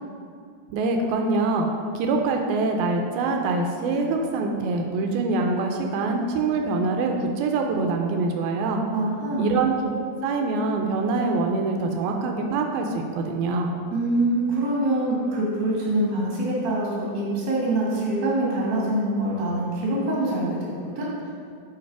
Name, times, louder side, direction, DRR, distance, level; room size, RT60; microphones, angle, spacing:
voice 1, 0.7-1.7 2.0-8.8 9.4-13.7, right 3 dB, 85° right, 2 dB, 2.5 m, -24 dB
voice 2, 8.9-9.5 13.9-21.1, right 1 dB, 40° right, -6 dB, 1.9 m, -25 dB
7.2 x 4.6 x 4.7 m, 2.3 s
omnidirectional pair, 4.3 m